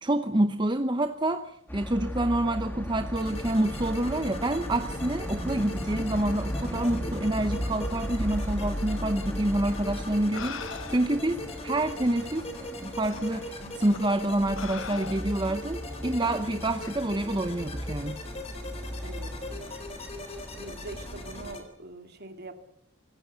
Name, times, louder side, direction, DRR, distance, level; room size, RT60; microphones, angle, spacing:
voice 1, 0.0-18.2, right 1 dB, 20° right, 9 dB, 0.8 m, -28 dB
sound 1, 1.7-21.6, equal, 10° left, 2.1 m, -36 dB
sound 2, 3.1-21.6, left 1 dB, 30° left, 3.8 m, -41 dB
sound 3, 9.7-9.8 10.3-11.3 12.2-12.3 13.1-13.3 13.9-14.1 14.6-15.5 16.8-17.0, left 6 dB, 60° left, 1.0 m, -40 dB
voice 2, 19.0-19.8 20.5-22.6, right 2 dB, 50° right, 7 dB, 2.6 m, -43 dB
26.5 x 16.0 x 8.2 m, 0.75 s
head